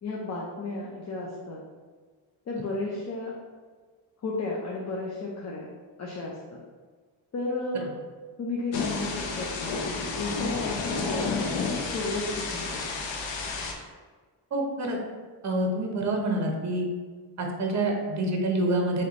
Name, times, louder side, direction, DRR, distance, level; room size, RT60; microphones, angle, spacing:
voice 1, 0.0-1.6 2.5-3.3 4.2-5.7 6.0-6.6 7.3-7.9 8.4-13.1, left 2 dB, 35° left, -4 dB, 0.6 m, -33 dB
Thunder / Rain, 8.7-13.7, left 4 dB, 70° left, 0.7 m, -31 dB
voice 2, 14.5-15.0 15.4-16.8 17.4-19.1, right 1 dB, 35° right, 1 dB, 0.8 m, -27 dB
3.3 x 2.8 x 3.9 m, 1.4 s
cardioid pair, 100°, 46 cm